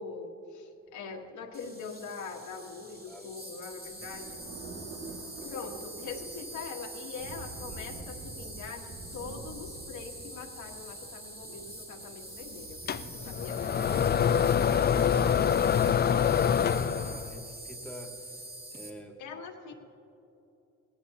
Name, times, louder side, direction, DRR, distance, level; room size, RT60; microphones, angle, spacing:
voice 1, 0.0-4.4 5.4-12.8 13.2-14.0 19.2-19.7, left 5 dB, 80° left, 2 dB, 1.5 m, -42 dB
Insect, 1.5-18.9, right 1 dB, 30° right, 2.5 m, -45 dB
sound 1, 3.1-16.2, right 2 dB, 60° right, 2.0 m, -48 dB
sound 2, 12.9-17.4, left 8 dB, 35° left, 0.4 m, -25 dB
voice 2, 13.0-18.1 18.7-19.2, left 1 dB, 5° left, 2 dB, 1.8 m, -47 dB
18.5 x 17.5 x 2.8 m, 2.9 s
cardioid pair, 90°, 30 cm